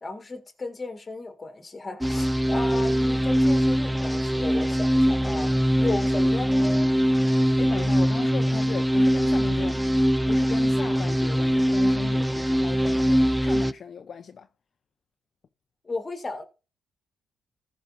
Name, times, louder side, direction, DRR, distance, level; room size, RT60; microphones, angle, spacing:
voice 1, 0.0-6.9 15.8-16.4, left 3 dB, 25° left, 1.8 m, -35 dB
sound 1, 2.0-13.7, equal, 5° right, 0.4 m, -22 dB
voice 2, 7.6-10.0 10.3-14.5, left 7 dB, 50° left, 0.6 m, -37 dB
14.5 x 5.2 x 4.1 m
cardioid pair, 90°, 0 cm